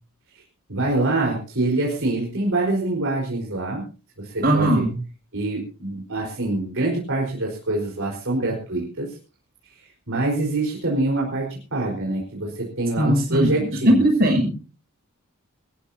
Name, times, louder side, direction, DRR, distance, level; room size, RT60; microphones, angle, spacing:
voice 1, 0.7-3.8 4.2-4.8 5.3-9.2 10.1-14.1, right 2 dB, 65° right, -2 dB, 4.7 m, -25 dB
voice 2, 4.4-5.0 13.0-13.5 13.9-14.5, right 1 dB, 45° right, 1 dB, 6.9 m, -18 dB
25.0 x 14.0 x 2.8 m, 0.34 s
head